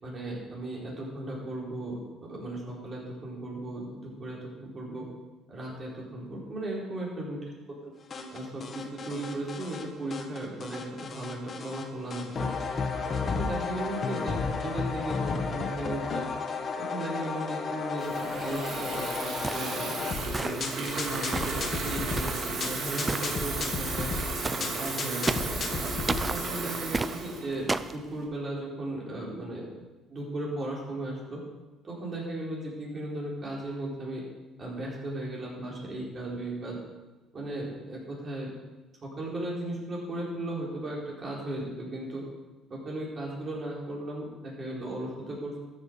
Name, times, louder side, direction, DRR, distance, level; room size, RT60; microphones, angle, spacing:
voice 1, 0.0-2.0 2.3-5.0 5.5-7.4 8.3-12.6 13.2-16.3 16.8-19.9 20.3-24.1 24.5-25.8 26.3-29.7 30.1-31.4 31.8-34.2 34.6-36.8 37.3-38.5 39.0-42.2 42.7-45.6, right 1 dB, 35° right, -4 dB, 4.7 m, -36 dB
sound 1, 8.1-9.8 10.1-11.8 12.1-26.5, left 4 dB, 40° left, 1.5 m, -33 dB
Water tap faucet / Fill (with liquid), 18.0-28.2, right 3 dB, 55° right, 2.4 m, -34 dB
sound 2, 19.4-19.8 20.3-20.8 21.3-21.6 22.2-22.5 23.1-23.3 24.4-24.7 25.3-25.6 26.1-26.4 26.9-27.1 27.7-28.0, right 3 dB, 20° right, 0.5 m, -31 dB
12.5 x 8.0 x 5.4 m, 1.2 s
cardioid pair, 100°, 0 cm